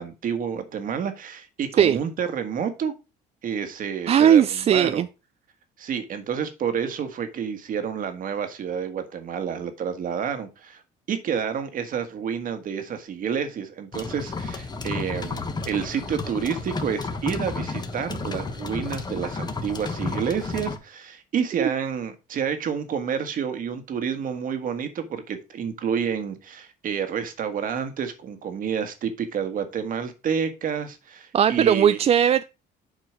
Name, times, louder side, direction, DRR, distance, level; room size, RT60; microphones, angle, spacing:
voice 1, 0.0-2.9 3.4-5.1 5.8-10.8 11.1-32.0, right 7 dB, 55° right, 1.5 m, -29 dB
voice 2, 4.1-5.1 21.6-21.7 31.3-32.4, right 9 dB, 40° right, 0.4 m, -18 dB
sound 1, 13.9-20.8, left 3 dB, 25° left, 1.2 m, -32 dB
7.7 x 4.5 x 4.7 m
cardioid pair, 110°, 17 cm